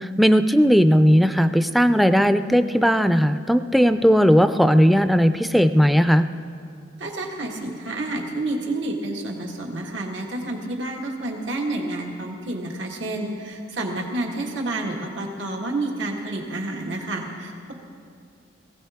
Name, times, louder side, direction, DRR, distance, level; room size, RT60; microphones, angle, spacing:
voice 1, 0.0-6.3, equal, ahead, 10 dB, 0.3 m, -17 dB
voice 2, 7.0-17.7, right 2 dB, 90° right, 0 dB, 1.7 m, -29 dB
19.5 x 16.5 x 3.5 m, 2.3 s
head